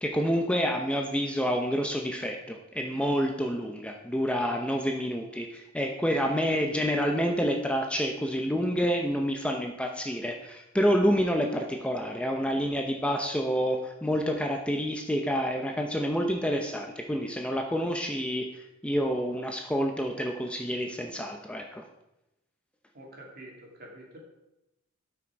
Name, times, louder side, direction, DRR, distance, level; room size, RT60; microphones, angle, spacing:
voice 1, 0.0-21.9, equal, 5° left, 2 dB, 0.7 m, -28 dB
voice 2, 22.9-24.2, right 1 dB, 50° right, -1 dB, 2.7 m, -47 dB
12.0 x 6.1 x 4.6 m, 0.91 s
head